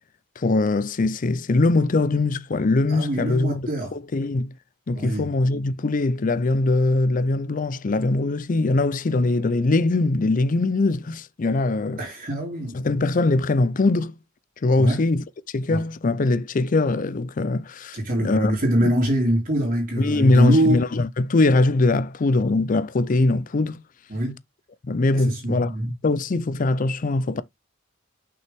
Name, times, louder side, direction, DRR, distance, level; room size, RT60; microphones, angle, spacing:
voice 1, 0.4-4.5 4.9-12.0 12.7-14.1 14.6-15.2 15.5-18.6 18.8-18.9 20.0-23.8 24.8-25.7 26.0-27.4, left 2 dB, 45° left, 0.5 m, -22 dB
voice 2, 2.9-3.9 4.9-5.3 12.0-12.8 14.8-15.0 15.7-15.8 17.9-20.9 24.1-24.3 25.1-25.9, right 1 dB, 45° right, 2.7 m, -24 dB
6.2 x 5.5 x 3.5 m
head